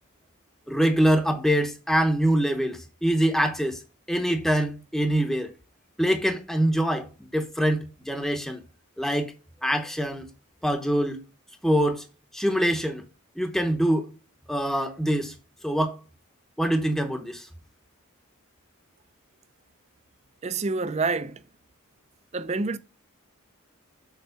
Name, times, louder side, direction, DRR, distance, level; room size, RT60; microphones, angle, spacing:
voice 1, 0.7-3.8 4.1-5.5 6.0-8.6 9.0-9.3 9.6-10.3 10.6-11.2 11.6-12.0 12.3-13.0 13.4-14.1 14.5-15.3 15.6-16.0 16.6-17.5, equal, ahead, 0.8 m, -24 dB
voice 2, 20.4-21.4 22.3-22.8, right 3 dB, 30° right, 0.5 m, -27 dB
6.9 x 4.5 x 5.7 m
head